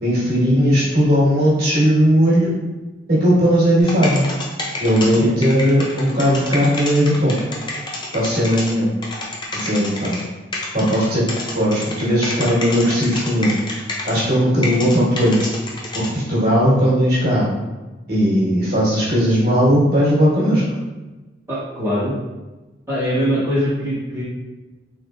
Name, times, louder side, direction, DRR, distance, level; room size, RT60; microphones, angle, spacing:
voice 1, 0.0-2.5 3.1-4.2 4.8-7.4 8.1-8.9 9.5-10.2 10.7-11.2 11.5-13.5 14.0-15.5 15.9-17.5 18.1-20.6, equal, 50° right, -8 dB, 1.3 m, -17 dB
sound 1, 3.8-8.7 9.0-10.2 10.5-14.3 14.6-16.1, left 2 dB, 25° left, 0.5 m, -28 dB
voice 2, 21.5-22.1 22.9-24.2, equal, 15° right, -11 dB, 1.2 m, -22 dB
3.8 x 3.2 x 2.3 m, 1.2 s
head